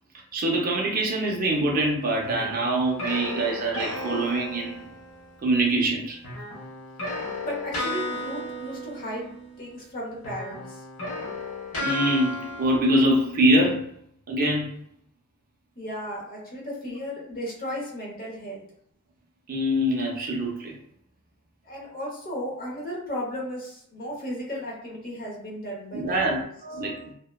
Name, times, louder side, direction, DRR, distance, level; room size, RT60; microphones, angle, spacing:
voice 1, 0.3-4.9 5.4-6.2 11.8-13.8 14.3-14.7 19.5-20.7 25.9-27.1, right 1 dB, 40° right, -1 dB, 0.5 m, -24 dB
sound 1, 2.2-5.3 6.2-9.9 10.2-12.8, left 1 dB, 70° left, 0.9 m, -34 dB
voice 2, 7.4-10.8 15.8-18.6 21.6-26.4, equal, 40° left, -4 dB, 0.8 m, -35 dB
2.8 x 2.1 x 2.2 m, 0.68 s
head